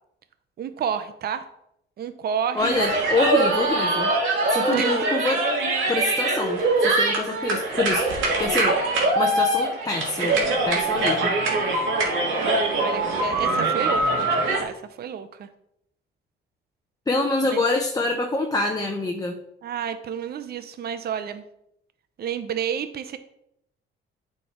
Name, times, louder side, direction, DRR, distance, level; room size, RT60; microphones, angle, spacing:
voice 1, 0.6-1.5 2.0-2.8 4.7-5.1 12.7-15.5 17.5-17.6 19.6-21.4 22.2-23.2, right 8 dB, 55° right, 11 dB, 0.6 m, -30 dB
voice 2, 2.5-4.1 4.5-5.4 5.9-8.8 9.1-11.3 17.1-19.4, left 2 dB, 20° left, 2 dB, 0.8 m, -26 dB
sound 1, 2.6-14.6, right 2 dB, 80° right, 2.3 m, -23 dB
8.9 x 4.6 x 4.3 m, 0.77 s
cardioid pair, 90°, 20 cm